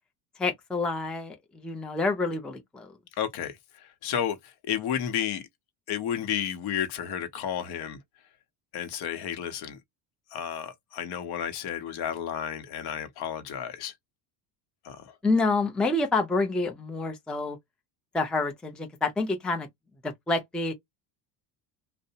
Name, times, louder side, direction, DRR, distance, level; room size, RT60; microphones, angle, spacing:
voice 1, 0.4-2.9 15.2-17.6 18.1-19.7 20.0-20.7, left 3 dB, ahead, 0.4 m, -28 dB
voice 2, 3.2-5.5 5.9-8.0 8.7-9.8 10.3-13.9 14.8-15.1, left 9 dB, 60° left, 0.8 m, -32 dB
2.6 x 2.1 x 2.7 m
supercardioid pair, 105°, 45 cm